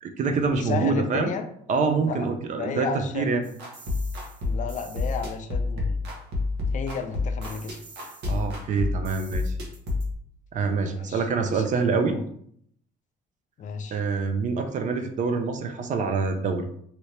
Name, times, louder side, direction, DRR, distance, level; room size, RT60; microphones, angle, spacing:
voice 1, 0.0-1.3 1.7-3.4 8.3-9.5 10.5-12.2 13.9-16.6, right 4 dB, 45° right, 6 dB, 0.5 m, -26 dB
voice 2, 0.6-1.5 2.0-3.5 4.4-6.0 6.7-7.8 10.9-11.6 12.1-12.2 13.6-14.0, left 6 dB, 50° left, 7 dB, 0.5 m, -33 dB
sound 1, 3.4-10.1, left 3 dB, 85° right, 1.0 m, -29 dB
2.9 x 2.7 x 3.2 m, 0.67 s
cardioid pair, 110°, 17 cm